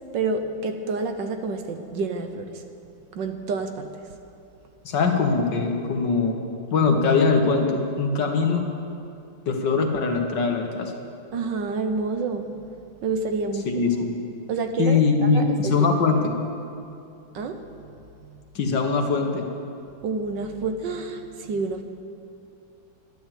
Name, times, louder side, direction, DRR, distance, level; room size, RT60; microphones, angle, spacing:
voice 1, 0.1-2.5 3.1-3.9 11.3-12.5 13.0-13.7 14.5-15.8 17.3-17.6 20.0-21.8, right 4 dB, 65° right, 6 dB, 1.4 m, -28 dB
voice 2, 4.9-6.4 6.7-8.6 9.5-10.9 13.7-14.2 14.8-16.3 18.6-19.4, left 4 dB, 65° left, 3 dB, 1.8 m, -22 dB
12.5 x 11.0 x 7.5 m, 2.6 s
omnidirectional pair, 2.2 m